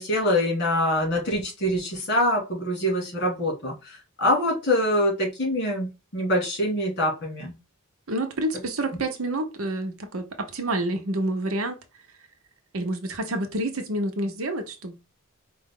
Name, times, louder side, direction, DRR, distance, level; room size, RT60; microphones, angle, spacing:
voice 1, 0.0-7.5, left 1 dB, 50° left, 2.4 m, -25 dB
voice 2, 8.1-11.8 12.7-14.9, right 1 dB, 80° right, 0.9 m, -28 dB
4.8 x 2.5 x 3.6 m
head